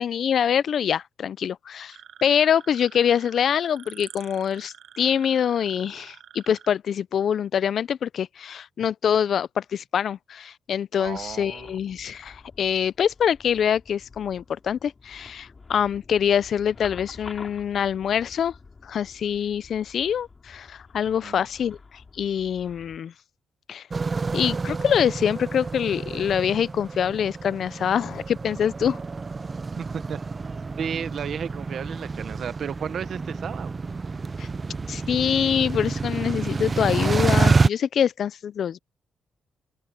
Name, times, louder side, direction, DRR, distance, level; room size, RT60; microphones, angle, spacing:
voice 1, 0.0-2.0 2.2-18.5 18.8-21.8 22.2-23.1 23.7-23.8 24.3-29.0 34.4-34.5 34.9-38.8, left 8 dB, 60° left, 0.4 m, -25 dB
sound 1, 1.9-6.7, right 9 dB, 75° right, 1.1 m, -47 dB
sound 2, 11.0-23.0, left 4 dB, 30° left, 3.6 m, -48 dB
voice 2, 11.0-11.8 21.1-21.5 29.7-30.2 30.5-33.7, right 7 dB, 55° right, 0.9 m, -34 dB
sound 3, 23.9-37.7, right 4 dB, 30° right, 0.5 m, -28 dB
open air
cardioid pair, 130°, 0 cm